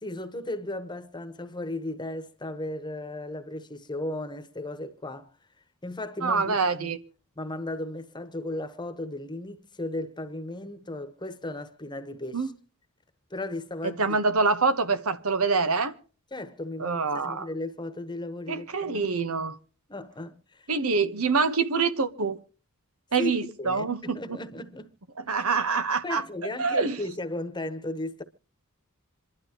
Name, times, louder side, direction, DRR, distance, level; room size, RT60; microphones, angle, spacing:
voice 1, 0.0-5.3 5.8-6.9 7.4-12.5 13.3-14.2 16.3-19.1 19.9-20.7 23.2-23.3 23.6-24.9 25.4-25.5 26.0-28.2, left 1 dB, 20° left, 1.2 m, -35 dB
voice 2, 6.2-7.0 12.3-12.5 14.0-15.9 16.8-17.5 18.5-19.6 20.7-22.4 23.1-24.4 25.2-26.2 26.6-27.0, right 4 dB, 90° right, 1.2 m, -25 dB
26.5 x 12.0 x 3.0 m
head